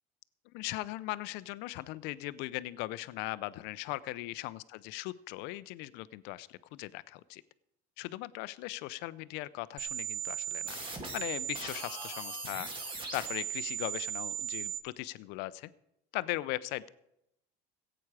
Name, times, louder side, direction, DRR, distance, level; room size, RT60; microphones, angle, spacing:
voice 1, 0.5-7.4 8.0-10.8 11.1-12.7 13.1-15.7 16.1-16.9, left 18 dB, 70° left, 17 dB, 0.6 m, -39 dB
sound 1, 9.8-14.8, right 7 dB, 30° right, 2.1 m, -37 dB
15.5 x 8.8 x 4.8 m, 0.82 s
supercardioid pair, 120°, 18 cm